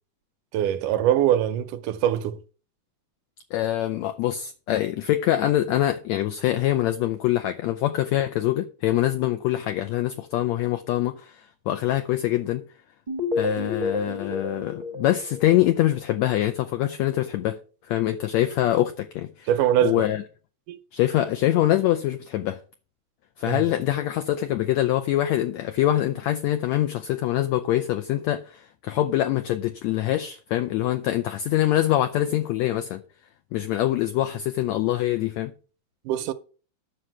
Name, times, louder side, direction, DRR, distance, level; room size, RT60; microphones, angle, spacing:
voice 1, 0.5-2.4 19.5-20.1 20.7-20.8 23.5-23.8 36.1-36.3, right 11 dB, 80° right, 2.1 m, -23 dB
voice 2, 3.5-12.6 13.4-17.6 17.9-19.5 19.8-20.2 20.9-22.6 23.4-33.0 33.5-35.5, left 13 dB, 75° left, 1.7 m, -24 dB
sound 1, 13.1-16.0, left 3 dB, 45° right, 0.5 m, -29 dB
10.0 x 6.6 x 6.1 m
omnidirectional pair, 3.9 m